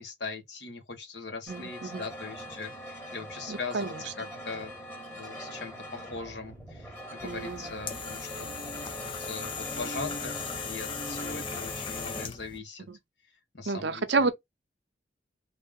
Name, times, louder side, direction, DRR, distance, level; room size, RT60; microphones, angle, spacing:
voice 1, 0.0-4.8 5.1-8.5 9.2-12.9 13.5-14.2, left 4 dB, 70° left, 1.5 m, -40 dB
sound 1, 1.5-12.3, equal, 10° left, 1.6 m, -43 dB
voice 2, 1.5-2.0 3.5-4.3 7.2-7.7 12.9-13.0 13.7-14.3, right 4 dB, 75° right, 0.7 m, -30 dB
sound 2, 7.2-12.6, left 4 dB, 30° left, 0.5 m, -37 dB
3.3 x 2.8 x 3.6 m
head